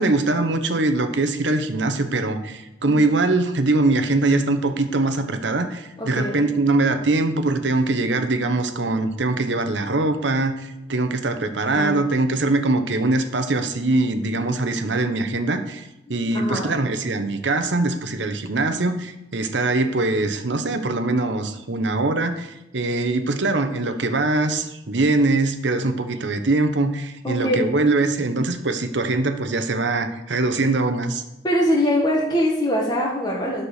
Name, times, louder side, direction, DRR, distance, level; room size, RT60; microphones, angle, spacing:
voice 1, 0.0-31.2, right 2 dB, 75° right, 9 dB, 1.0 m, -22 dB
voice 2, 6.0-6.4 11.8-12.3 16.3-16.7 27.2-27.6 31.4-33.6, equal, 20° left, -3 dB, 1.5 m, -23 dB
9.9 x 6.0 x 6.6 m, 0.94 s
head